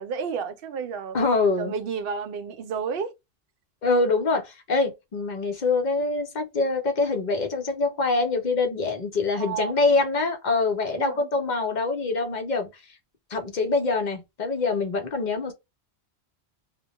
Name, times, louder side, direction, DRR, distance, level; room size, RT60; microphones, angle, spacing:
voice 1, 0.0-1.2 1.6-3.1 9.4-9.7 11.0-11.3, right 6 dB, 65° right, 0.7 m, -31 dB
voice 2, 1.1-1.7 3.8-13.0 13.3-15.5, left 3 dB, 50° left, 0.7 m, -25 dB
2.2 x 2.1 x 2.8 m
omnidirectional pair, 1.1 m